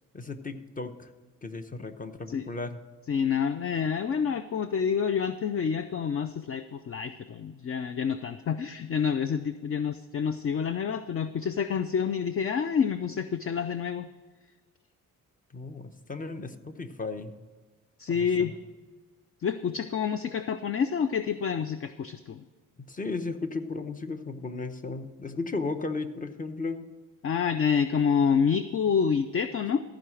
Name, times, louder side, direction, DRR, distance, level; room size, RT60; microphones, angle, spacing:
voice 1, 0.1-1.1 1.4-2.8 15.5-17.3 18.1-18.5 22.8-26.8, left 3 dB, 25° left, 9 dB, 0.9 m, -35 dB
voice 2, 3.1-14.1 18.0-18.5 19.4-22.4 27.2-29.8, left 7 dB, 40° left, 11 dB, 0.5 m, -28 dB
14.5 x 4.9 x 6.4 m, 1.4 s
cardioid pair, 85°, 35 cm